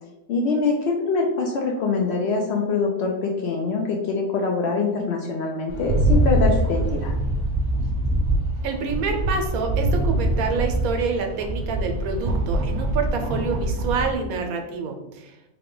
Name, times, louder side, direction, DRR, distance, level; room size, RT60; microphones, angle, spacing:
voice 1, 0.3-7.1, left 4 dB, 65° left, 0 dB, 0.7 m, -24 dB
Rattle, 5.7-14.1, right 1 dB, 30° right, 1.2 m, -23 dB
voice 2, 8.6-15.3, right 5 dB, 90° right, 4 dB, 1.1 m, -27 dB
3.8 x 2.2 x 3.7 m, 0.96 s
omnidirectional pair, 1.5 m